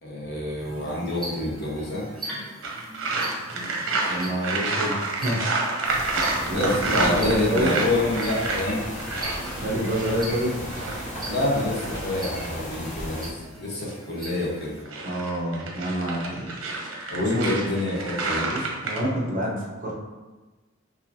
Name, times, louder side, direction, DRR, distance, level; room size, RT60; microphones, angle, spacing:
voice 1, 0.0-2.0 6.4-8.9 11.3-14.8 17.1-18.5, left 1 dB, 55° left, -4 dB, 1.1 m, -27 dB
sound 1, 0.6-14.8, right 1 dB, ahead, 1.4 m, -41 dB
sound 2, 2.6-12.5 14.6-19.0, right 3 dB, 80° right, 0.8 m, -29 dB
voice 2, 4.1-5.6 6.5-7.8 9.6-10.6 15.0-16.5 17.3-17.5 18.3-19.9, equal, 40° right, -4 dB, 0.9 m, -27 dB
sound 3, 5.8-13.3, equal, 35° left, 0.7 m, -35 dB
4.9 x 3.0 x 2.7 m, 1.2 s
head